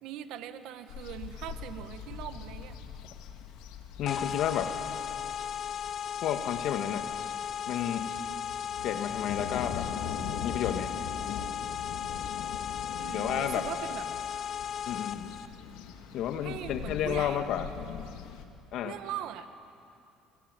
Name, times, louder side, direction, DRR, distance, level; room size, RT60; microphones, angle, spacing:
voice 1, 0.0-2.8 13.0-14.1 16.4-17.5 18.8-19.5, right 11 dB, 75° right, 9 dB, 1.7 m, -40 dB
sound 1, 0.9-18.4, left 8 dB, 85° left, 2.2 m, -42 dB
voice 2, 4.0-4.7 6.2-7.1 7.7-8.2 8.8-9.9 10.4-10.9 13.1-13.7 14.9-15.4 16.1-17.7 18.7-18.9, left 10 dB, 65° left, 7 dB, 2.0 m, -31 dB
sound 2, 4.1-15.5, left 8 dB, 45° left, 1.1 m, -36 dB
29.0 x 21.5 x 9.3 m, 2.6 s
cardioid pair, 105°, 0 cm